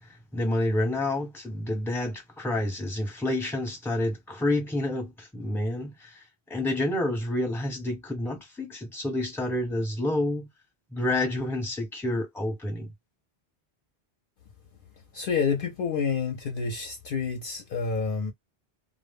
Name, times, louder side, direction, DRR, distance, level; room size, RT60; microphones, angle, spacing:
voice 1, 0.3-10.5 10.9-12.9, left 1 dB, ahead, 0.7 m, -29 dB
voice 2, 15.1-18.3, left 5 dB, 60° left, 0.7 m, -28 dB
2.0 x 2.0 x 3.4 m
omnidirectional pair, 1.1 m